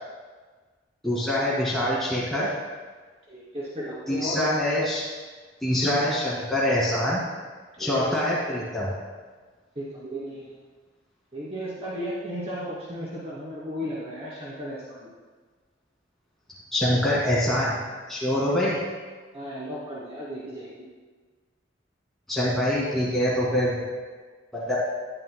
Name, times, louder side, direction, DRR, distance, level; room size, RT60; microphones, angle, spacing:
voice 1, 1.0-2.5 4.1-5.0 5.6-7.2 7.8-8.9 16.7-17.8 18.1-18.8 22.3-23.8 24.5-24.8, left 1 dB, ahead, -8 dB, 2.1 m, -24 dB
voice 2, 3.3-4.4 7.7-8.2 9.7-10.5 11.3-15.1 18.3-18.5 19.3-20.9, equal, 35° right, -8 dB, 2.7 m, -35 dB
17.5 x 11.5 x 2.2 m, 1.4 s
head